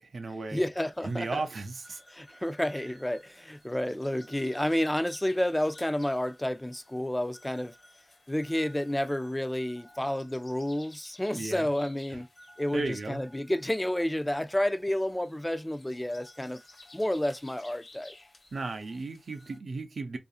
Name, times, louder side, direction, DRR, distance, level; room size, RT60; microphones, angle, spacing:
voice 1, 0.0-0.6 1.0-2.0 11.3-11.7 12.7-13.2 18.5-20.2, right 3 dB, 85° right, 0.6 m, -35 dB
voice 2, 0.5-1.4 2.1-7.8 8.3-12.3 12.6-16.6 16.9-18.1, left 1 dB, 15° left, 0.3 m, -30 dB
sound 1, 0.9-19.6, left 1 dB, 80° left, 1.2 m, -55 dB
2.7 x 2.4 x 2.4 m
cardioid pair, 40°, 0 cm